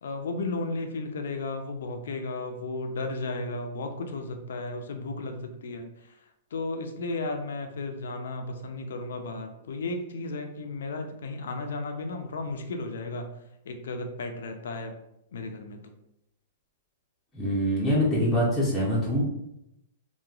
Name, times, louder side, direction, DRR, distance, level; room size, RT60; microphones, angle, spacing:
voice 1, 0.0-6.2 6.5-13.3 13.6-14.9 15.3-15.9, left 2 dB, 80° left, 6 dB, 0.4 m, -34 dB
voice 2, 17.3-19.3, equal, 5° left, -9 dB, 0.6 m, -24 dB
3.0 x 2.2 x 2.4 m, 0.83 s
hypercardioid pair, 150°, 0 cm